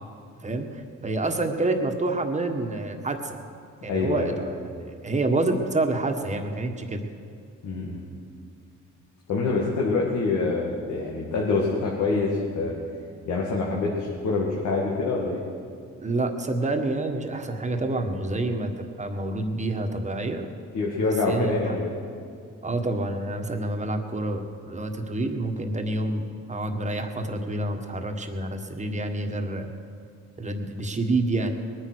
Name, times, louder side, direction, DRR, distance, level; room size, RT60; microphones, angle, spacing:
voice 1, 0.4-3.4 3.8-4.6 4.8-7.0 16.0-20.5 20.9-21.8 22.6-29.7 30.4-31.7, right 2 dB, 25° right, 5 dB, 1.6 m, -28 dB
voice 2, 3.8-4.3 7.6-8.0 9.3-12.7 13.3-15.4 20.7-21.9, left 3 dB, 75° left, -3 dB, 2.3 m, -25 dB
20.5 x 9.7 x 6.4 m, 2.3 s
cardioid pair, 90°, 30 cm